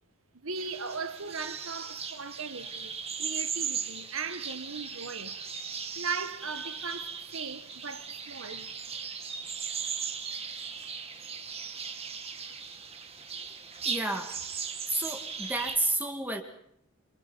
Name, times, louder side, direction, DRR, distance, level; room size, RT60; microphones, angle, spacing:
voice 1, 0.3-5.4 5.9-8.7, right 4 dB, 75° right, 1.7 m, -38 dB
sound 1, 0.6-15.8, right 6 dB, 30° right, 2.1 m, -38 dB
voice 2, 13.8-14.4 14.9-16.4, right 2 dB, 10° right, 2.1 m, -31 dB
27.5 x 23.5 x 5.7 m
head